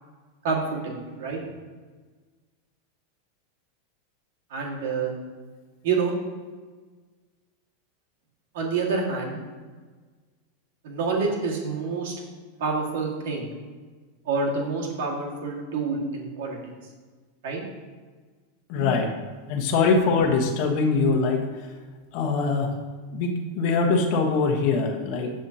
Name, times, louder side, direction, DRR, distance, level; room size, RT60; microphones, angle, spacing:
voice 1, 0.4-1.4 4.5-5.1 5.8-6.1 8.5-9.4 10.8-12.1 12.6-13.5 14.3-16.6 17.4-17.6 18.8-18.9, right 4 dB, 70° right, -1 dB, 1.7 m, -27 dB
voice 2, 18.7-19.1 19.5-21.4 22.1-22.7 23.1-25.3, left 4 dB, 50° left, 2 dB, 1.0 m, -23 dB
7.5 x 7.0 x 2.8 m, 1.4 s
supercardioid pair, 150°, 0 cm